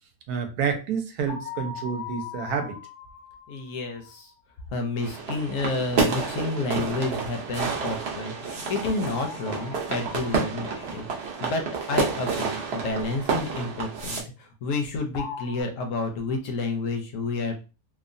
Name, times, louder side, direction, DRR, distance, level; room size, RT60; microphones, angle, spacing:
voice 1, 0.3-2.8, right 6 dB, 85° right, 5 dB, 1.1 m, -29 dB
sound 1, 1.3-4.2 9.1-11.2 15.1-15.6, left 5 dB, 85° left, 0.5 m, -40 dB
voice 2, 3.5-4.3 4.7-11.6 11.9-17.6, left 3 dB, 70° left, 4 dB, 0.8 m, -30 dB
sound 2, 5.0-14.2, right 5 dB, 55° right, 0.7 m, -29 dB
2.9 x 2.1 x 2.5 m, 0.31 s
omnidirectional pair, 1.6 m